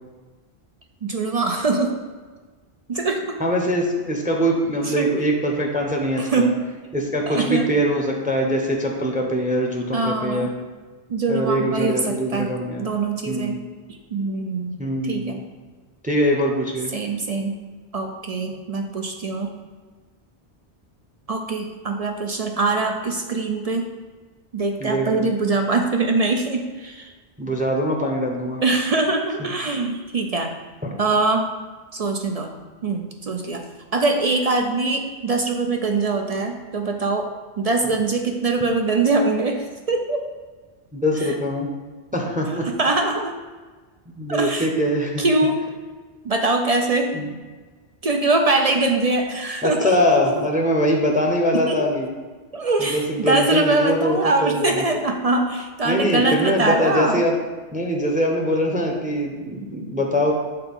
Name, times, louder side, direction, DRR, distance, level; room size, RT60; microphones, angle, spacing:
voice 1, 1.0-2.0 2.9-3.4 4.8-5.1 6.2-6.6 7.3-7.7 9.9-10.5 11.1-13.6 14.1-15.4 16.9-17.6 17.9-19.5 21.3-23.8 24.5-27.1 28.6-30.5 31.0-31.5 31.9-32.5 32.8-33.6 33.9-37.3 37.6-40.3 41.2-41.3 42.6-43.3 44.3-44.7 45.2-45.6 46.2-47.2 48.0-50.5 51.5-51.8 52.5-57.2, right 3 dB, 50° right, 3 dB, 0.5 m, -23 dB
voice 2, 3.4-6.5 6.9-10.5 11.3-12.9 13.3-13.6 14.8-15.4 16.0-16.9 24.8-25.3 27.4-28.6 30.8-30.9 40.9-41.7 42.1-42.7 44.1-45.3 47.1-47.3 49.6-52.1 52.8-54.8 55.8-57.4 57.7-60.3, equal, 10° right, 1 dB, 0.7 m, -22 dB
6.8 x 3.9 x 5.4 m, 1.4 s
omnidirectional pair, 1.1 m